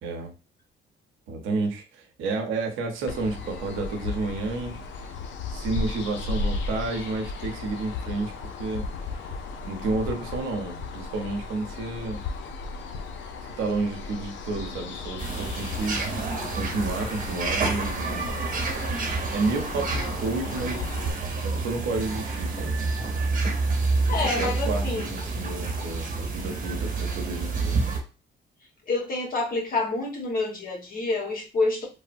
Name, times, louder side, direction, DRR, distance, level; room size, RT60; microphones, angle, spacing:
voice 1, 0.0-0.3 1.3-5.1 5.5-9.2 9.6-12.2 13.6-16.0 16.5-18.3 19.3-20.9 21.4-22.8 24.1-27.8, right 3 dB, 90° right, 3 dB, 0.7 m, -31 dB
sound 1, 3.1-21.1, left 4 dB, 70° left, 0.5 m, -35 dB
sound 2, 15.2-28.0, right 3 dB, 40° right, 0.9 m, -28 dB
voice 2, 24.1-25.1 28.9-31.8, left 3 dB, 45° left, -1 dB, 1.2 m, -27 dB
3.3 x 2.0 x 2.5 m, 0.32 s
cardioid pair, 90°, 20 cm